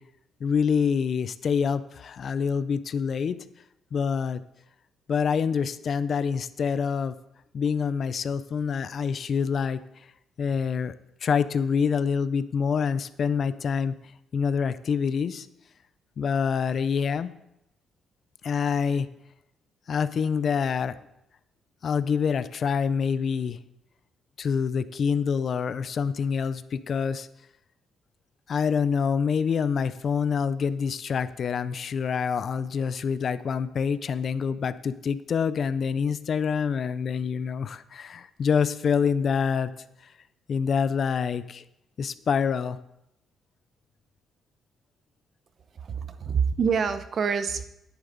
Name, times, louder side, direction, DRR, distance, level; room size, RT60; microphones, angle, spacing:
voice 1, 0.4-3.4 3.9-4.4 5.1-7.2 7.5-9.8 10.4-10.9 11.2-13.9 14.3-15.5 16.2-17.3 18.4-19.1 19.9-20.9 21.8-23.6 24.4-27.3 28.5-39.7 40.5-41.6 42.0-42.8, left 6 dB, 55° left, 14 dB, 0.5 m, -26 dB
voice 2, 45.8-47.7, right 6 dB, 50° right, 11 dB, 0.8 m, -26 dB
10.0 x 9.0 x 3.9 m, 0.83 s
cardioid pair, 90°, 0 cm